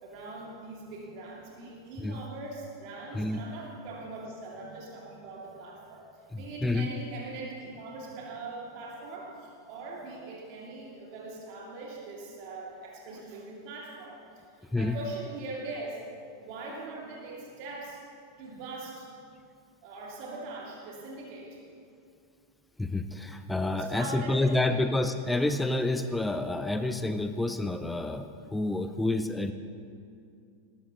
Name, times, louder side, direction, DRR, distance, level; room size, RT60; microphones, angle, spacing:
voice 1, 0.0-6.0 6.3-16.0 16.4-18.0 18.4-19.1 19.8-21.6 23.7-24.8, right 3 dB, 45° right, -3 dB, 2.4 m, -41 dB
voice 2, 6.3-6.9 14.7-15.0 22.8-29.5, left 2 dB, 5° left, 9 dB, 0.6 m, -29 dB
19.0 x 14.0 x 3.0 m, 2.4 s
figure-of-eight pair, 90°, 0 cm